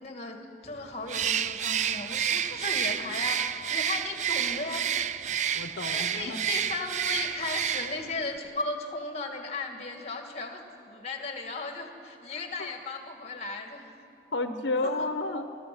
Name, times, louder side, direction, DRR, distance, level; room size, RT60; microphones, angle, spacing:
voice 1, 0.0-5.2 5.9-14.0 14.8-15.1, left 3 dB, 35° left, 4 dB, 2.2 m, -36 dB
Bird, 1.1-8.1, right 9 dB, 40° right, 0.5 m, -29 dB
voice 2, 5.5-6.4 12.3-12.7 14.3-15.5, left 2 dB, 90° left, 8 dB, 1.0 m, -31 dB
28.5 x 14.0 x 7.9 m, 2.6 s
head